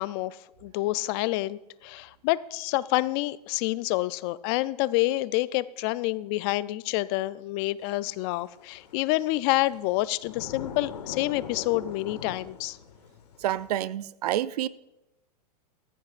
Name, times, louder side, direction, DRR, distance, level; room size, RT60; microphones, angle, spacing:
voice 1, 0.0-12.8, left 18 dB, 40° left, 0.4 m, -28 dB
sound 1, 8.0-8.1 8.5-13.7, left 6 dB, 85° left, 2.0 m, -41 dB
voice 2, 13.4-14.7, right 12 dB, 75° right, 0.5 m, -28 dB
18.5 x 14.5 x 2.5 m
hypercardioid pair, 135°, 20 cm